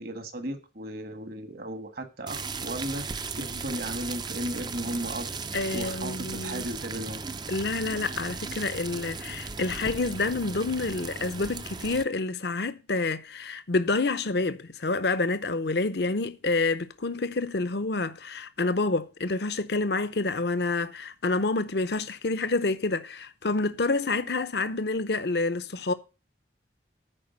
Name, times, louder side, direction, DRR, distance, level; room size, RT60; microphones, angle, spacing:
voice 1, 0.0-5.3 5.7-7.2, right 1 dB, 55° right, 1.5 m, -35 dB
sound 1, 2.3-12.0, right 4 dB, 25° right, 0.5 m, -37 dB
voice 2, 5.5-6.7 7.5-25.9, left 3 dB, 65° left, 0.7 m, -28 dB
10.0 x 4.8 x 8.0 m
head